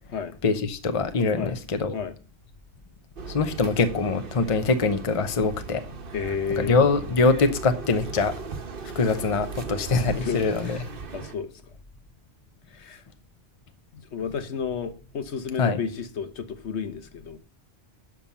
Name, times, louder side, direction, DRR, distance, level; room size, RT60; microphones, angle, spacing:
voice 1, 0.4-2.0 3.3-5.8 6.6-8.4 8.8-10.8 15.6-15.8, left 4 dB, 35° left, 0.8 m, -23 dB
sound 1, 3.2-11.3, right 4 dB, 55° right, 1.2 m, -37 dB
voice 2, 6.1-6.8 9.0-9.2 10.2-10.9 11.1-11.5 12.7-13.0 13.9-17.4, left 6 dB, 75° left, 1.2 m, -32 dB
7.0 x 6.1 x 7.2 m
omnidirectional pair, 1.1 m